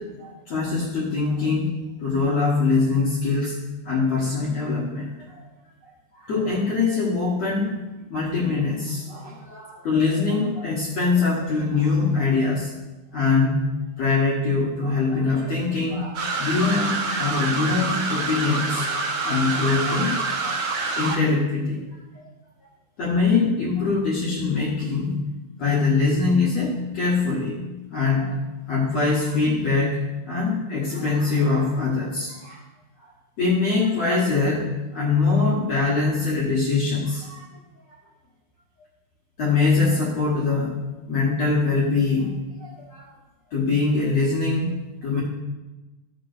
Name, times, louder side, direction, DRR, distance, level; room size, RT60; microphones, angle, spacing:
voice 1, 0.0-3.6 3.8-5.1 5.4-5.5 6.1-7.8 8.1-12.7 13.1-13.7 14.0-20.2 20.4-20.5 21.0-21.8 22.1-22.3 23.0-25.2 25.6-27.6 27.9-28.4 28.7-32.6 33.4-34.7 34.9-37.4 39.4-40.8 41.1-43.1 43.5-45.2, left 4 dB, 55° left, -7 dB, 2.4 m, -23 dB
sound 1, 16.1-21.2, right 3 dB, 65° right, 1.6 m, -26 dB
15.5 x 6.7 x 2.6 m, 1.1 s
omnidirectional pair, 4.3 m